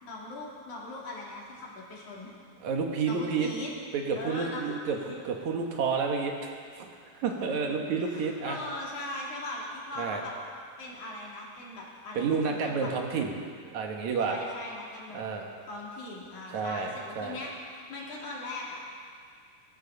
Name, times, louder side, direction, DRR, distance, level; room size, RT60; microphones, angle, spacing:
voice 1, 0.0-2.3 3.1-3.7 4.1-5.2 7.3-7.6 8.0-10.3 10.8-12.9 14.2-15.2 15.7-19.0, left 2 dB, 85° left, -4 dB, 4.3 m, -40 dB
voice 2, 2.6-3.5 3.9-5.0 5.2-6.9 7.1-8.6 10.0-10.2 12.1-13.4 13.7-14.4 15.1-15.5 16.5-17.4, right 5 dB, 75° right, 2 dB, 2.8 m, -30 dB
20.5 x 15.5 x 4.1 m, 2.1 s
omnidirectional pair, 3.4 m